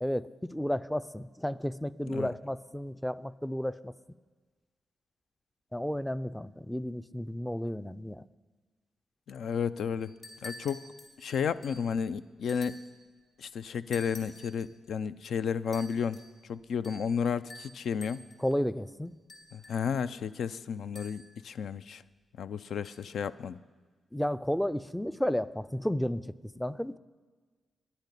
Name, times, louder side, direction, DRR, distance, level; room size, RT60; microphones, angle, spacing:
voice 1, 0.0-3.9 5.7-8.2 18.4-19.1 24.1-27.0, equal, 5° left, 15 dB, 0.4 m, -32 dB
voice 2, 9.3-10.1 10.4-10.9 11.2-12.8 13.4-16.2 16.5-18.2 19.5-22.0 22.4-23.6, left 7 dB, 75° left, 14 dB, 0.4 m, -32 dB
sound 1, 10.0-11.9 12.5-13.0 13.9-14.7 15.7-16.3 16.8-17.2 17.5-18.5 19.3-20.0 20.9-21.4 22.8-22.9, left 2 dB, 50° left, 2.7 m, -49 dB
10.5 x 10.0 x 9.8 m, 1.4 s
cardioid pair, 110°, 0 cm